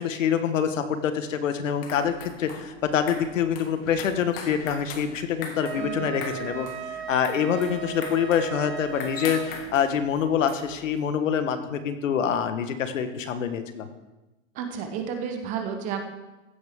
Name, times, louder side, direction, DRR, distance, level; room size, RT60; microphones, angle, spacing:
voice 1, 0.0-13.9, left 8 dB, 75° left, 9 dB, 1.5 m, -26 dB
sound 1, 1.6-11.1, left 5 dB, 45° left, 2.0 m, -42 dB
Wind instrument woodwind instrument, 5.6-9.5, right 8 dB, 55° right, 1.9 m, -36 dB
voice 2, 5.8-6.1 14.5-16.1, right 7 dB, 20° right, 5 dB, 0.9 m, -32 dB
15.0 x 10.5 x 3.7 m, 1.1 s
supercardioid pair, 165°, 39 cm